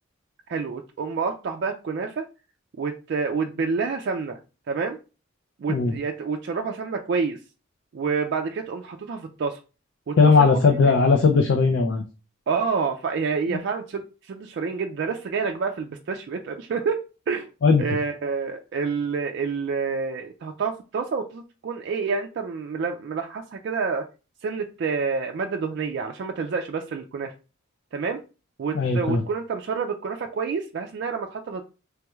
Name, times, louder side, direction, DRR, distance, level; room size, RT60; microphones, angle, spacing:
voice 1, 0.5-2.3 2.8-4.4 4.7-5.0 5.6-7.4 7.9-9.6 10.1-10.9 12.5-17.5 17.8-24.1 24.4-27.3 27.9-28.2 28.6-31.6, right 5 dB, 55° right, 0.3 m, -28 dB
voice 2, 10.2-12.0 13.5-13.6 17.6-17.8 28.7-29.2, left 4 dB, 65° left, 0.4 m, -18 dB
3.3 x 3.0 x 2.3 m
head